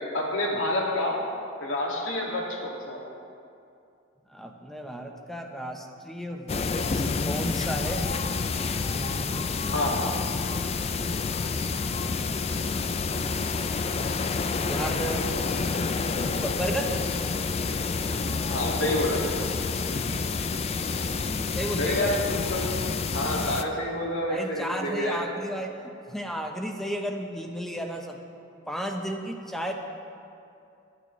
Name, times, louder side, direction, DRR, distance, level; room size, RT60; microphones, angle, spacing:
voice 1, 0.1-1.2 1.6-3.0 9.7-10.0 18.5-19.2 21.8-22.7 23.1-25.2, left 1 dB, 65° left, -2 dB, 2.2 m, -28 dB
voice 2, 4.3-8.1 8.9-9.8 14.7-15.2 16.4-16.9 21.5-22.2 24.3-28.2 28.7-29.7, right 1 dB, ahead, 2 dB, 0.9 m, -34 dB
sound 1, 6.5-23.6, left 4 dB, 30° left, 0.4 m, -28 dB
18.5 x 10.5 x 3.2 m, 2.5 s
head